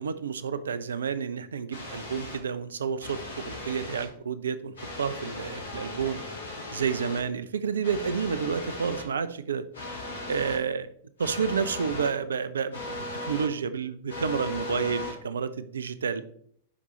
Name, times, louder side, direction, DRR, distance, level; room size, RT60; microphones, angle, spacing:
voice 1, 0.0-6.2 6.7-9.6 10.3-10.9 11.2-12.8 13.2-16.2, right 6 dB, 70° right, 14 dB, 0.6 m, -30 dB
sound 1, 1.7-2.4 3.0-4.1 4.8-7.2 7.8-9.0 9.7-10.6 11.2-12.1 12.7-13.5 14.1-15.1, left 2 dB, 70° left, 2.7 m, -37 dB
11.0 x 5.2 x 3.2 m, 0.63 s
figure-of-eight pair, 95°, 0 cm